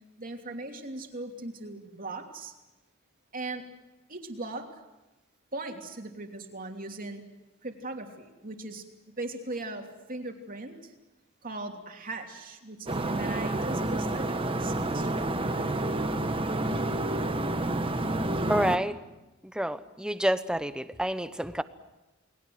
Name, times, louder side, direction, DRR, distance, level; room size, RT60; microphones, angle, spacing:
voice 1, 0.2-2.5 3.3-3.6 4.1-4.8 5.5-7.2 7.6-8.8 9.2-10.9 11.4-15.2, right 2 dB, 45° right, 3 dB, 3.0 m, -38 dB
sound 1, 12.9-18.8, right 1 dB, 25° right, 1.4 m, -29 dB
voice 2, 18.5-19.0 19.4-21.6, equal, 5° right, 11 dB, 1.0 m, -28 dB
29.5 x 20.5 x 7.9 m, 1.0 s
head